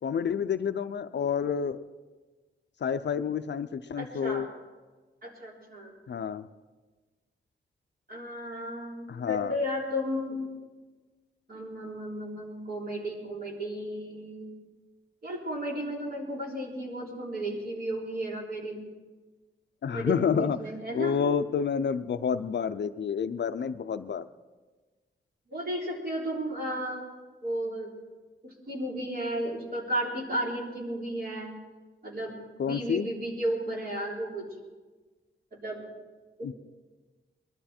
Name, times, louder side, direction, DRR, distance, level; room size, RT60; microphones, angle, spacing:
voice 1, 0.0-1.8 2.8-4.5 6.1-6.5 9.1-9.6 19.8-20.6 20.9-24.3 32.6-33.1 36.4-36.5, left 7 dB, 60° left, 11 dB, 0.5 m, -29 dB
voice 2, 3.9-4.4 5.2-5.9 8.1-10.4 11.5-14.5 15.2-18.8 19.9-21.2 25.5-27.1 27.4-27.9 28.4-31.5 32.0-32.4 32.6-34.5 35.5-35.8 36.4-36.5, equal, 50° right, -3 dB, 3.8 m, -34 dB
22.0 x 12.5 x 4.4 m, 1.3 s
wide cardioid pair, 170°, 20 cm